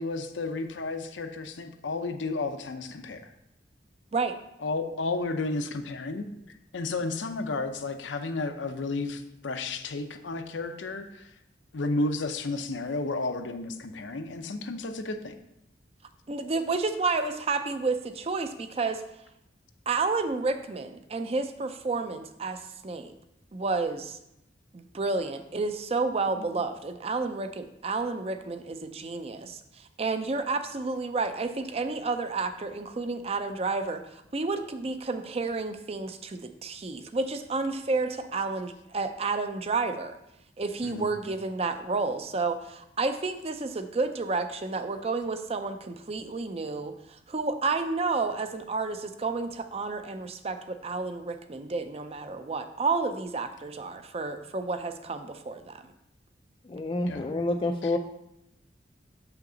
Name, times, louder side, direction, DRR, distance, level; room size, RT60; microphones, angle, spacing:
voice 1, 0.0-3.3 4.6-6.3 6.7-11.3 11.7-15.3 26.4-26.5 40.8-41.1 57.1-57.3, left 3 dB, 80° left, 7 dB, 0.6 m, -32 dB
voice 2, 16.3-19.0 19.9-22.6 22.8-23.1 23.5-24.2 24.7-29.6 30.0-34.0 34.3-40.2 40.6-46.9 47.3-55.8, right 3 dB, 35° right, 9 dB, 0.5 m, -30 dB
voice 3, 56.7-58.0, left 2 dB, 30° left, 3 dB, 0.3 m, -28 dB
7.0 x 5.8 x 3.8 m, 0.84 s
head